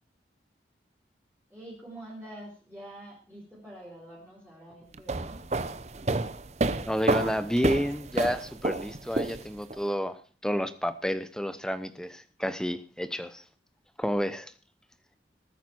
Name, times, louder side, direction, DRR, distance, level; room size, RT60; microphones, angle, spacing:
voice 1, 1.5-5.4, right 1 dB, 10° right, -7 dB, 4.2 m, -46 dB
sound 1, 4.9-9.8, right 2 dB, 40° right, 0.7 m, -30 dB
voice 2, 6.9-10.2 10.4-13.4 14.0-14.5, equal, 5° left, 12 dB, 0.8 m, -30 dB
20.0 x 9.2 x 4.6 m, 0.39 s
head